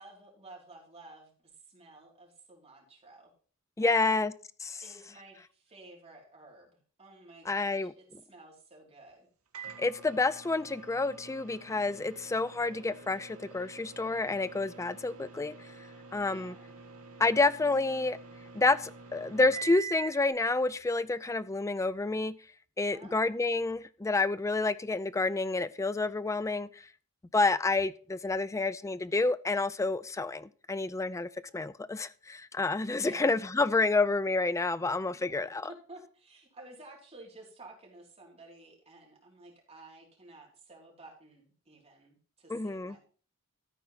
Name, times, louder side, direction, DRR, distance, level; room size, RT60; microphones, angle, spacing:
voice 1, 0.0-3.3 3.8-4.2 4.8-9.3 16.3-16.7 22.9-23.2 33.0-33.3 35.0-43.0, right 2 dB, 30° right, 3.4 m, -53 dB
voice 2, 3.8-4.3 4.6-4.8 7.5-8.2 9.8-15.5 16.1-16.6 17.2-18.2 18.5-22.3 22.8-26.7 27.3-35.7 42.5-43.0, left 3 dB, 15° left, 0.4 m, -29 dB
Microwave oven, 9.5-20.3, right 6 dB, 70° right, 1.8 m, -46 dB
13.5 x 4.5 x 5.6 m
head